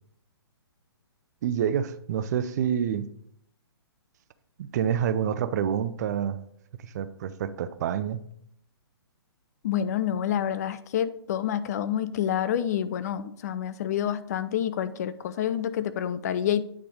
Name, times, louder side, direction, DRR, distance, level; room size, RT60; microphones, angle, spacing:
voice 1, 1.4-3.1 4.6-6.4 6.8-8.2, right 9 dB, 40° right, 12 dB, 0.5 m, -27 dB
voice 2, 9.6-16.6, left 10 dB, 40° left, 13 dB, 0.4 m, -28 dB
9.0 x 3.4 x 4.9 m, 0.70 s
figure-of-eight pair, 125°, 14 cm